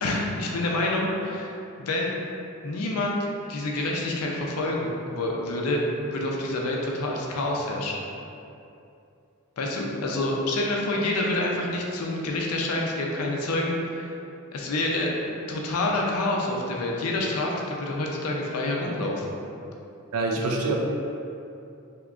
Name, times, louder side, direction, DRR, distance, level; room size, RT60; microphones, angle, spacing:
voice 1, 0.0-1.5 1.8-2.1 2.6-3.2 3.5-8.0 9.6-14.1 14.5-15.1 15.5-19.4, left 2 dB, 75° left, -1 dB, 0.4 m, -27 dB
voice 2, 20.1-20.7, right 3 dB, 85° right, 1 dB, 0.4 m, -25 dB
3.5 x 2.8 x 2.4 m, 2.7 s
head